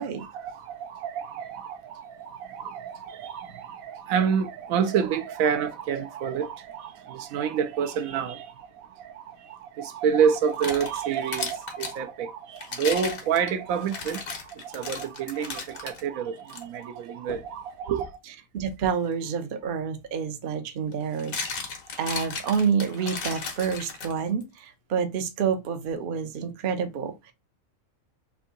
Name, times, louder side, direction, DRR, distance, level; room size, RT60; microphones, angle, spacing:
voice 1, 0.0-14.2 14.5-18.1, right 7 dB, 75° right, 1.0 m, -28 dB
sound 1, 10.3-12.0 12.6-16.0 16.5-16.6 17.3-17.5 19.6-19.7 20.9-24.4, left 4 dB, 75° left, 1.4 m, -35 dB
voice 2, 18.5-21.4 22.0-27.3, right 6 dB, 55° right, 0.6 m, -28 dB
3.6 x 2.6 x 3.7 m
omnidirectional pair, 1.5 m